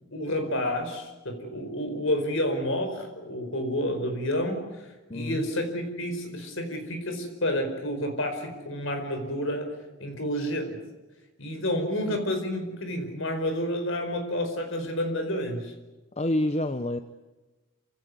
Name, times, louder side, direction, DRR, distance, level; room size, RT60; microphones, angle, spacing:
voice 1, 0.1-4.8 5.1-9.7 10.0-10.8 11.4-15.7, left 1 dB, 60° left, 6 dB, 4.7 m, -30 dB
voice 2, 5.1-5.5 12.1-12.2 16.2-17.0, left 1 dB, 30° left, 9 dB, 0.8 m, -28 dB
27.5 x 16.5 x 9.7 m, 1.1 s
head